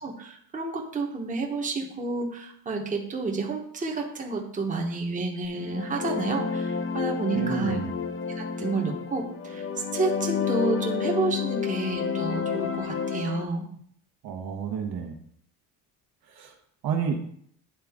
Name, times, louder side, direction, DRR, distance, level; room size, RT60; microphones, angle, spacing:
voice 1, 0.0-7.8 8.4-9.7 9.9-13.7, right 3 dB, 20° right, 0 dB, 1.1 m, -30 dB
sound 1, 5.5-13.4, left 6 dB, 30° left, 0.7 m, -30 dB
voice 2, 7.3-7.9 14.2-15.1 16.3-16.5 16.8-17.2, right 6 dB, 65° right, 3 dB, 1.3 m, -30 dB
10.0 x 3.8 x 3.6 m, 0.65 s
cardioid pair, 115°, 40 cm